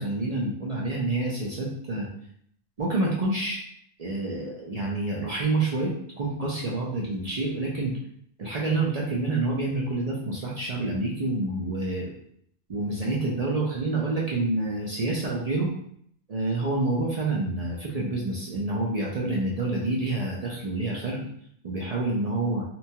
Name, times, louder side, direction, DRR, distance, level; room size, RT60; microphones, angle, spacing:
voice 1, 0.0-2.1 2.8-3.6 4.0-7.9 8.4-12.2 12.7-15.7 16.3-21.3 21.6-22.6, right 2 dB, 50° right, -4 dB, 0.5 m, -28 dB
2.9 x 2.2 x 2.7 m, 0.66 s
omnidirectional pair, 1.1 m